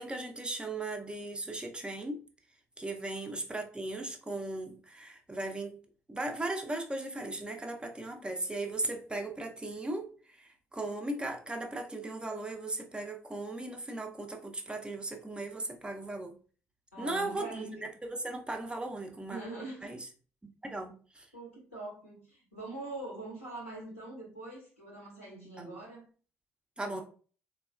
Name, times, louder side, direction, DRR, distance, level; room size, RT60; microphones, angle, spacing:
voice 1, 0.0-2.2 2.8-5.8 6.1-16.4 17.0-19.4 19.8-20.1 20.6-21.3 25.6-25.8 26.8-27.0, right 2 dB, 15° right, 3 dB, 0.5 m, -37 dB
voice 2, 16.9-17.7 19.3-19.9 21.3-26.0 26.8-27.0, right 2 dB, 90° left, -3 dB, 0.9 m, -43 dB
3.5 x 2.2 x 2.3 m, 0.39 s
figure-of-eight pair, 45°, 7 cm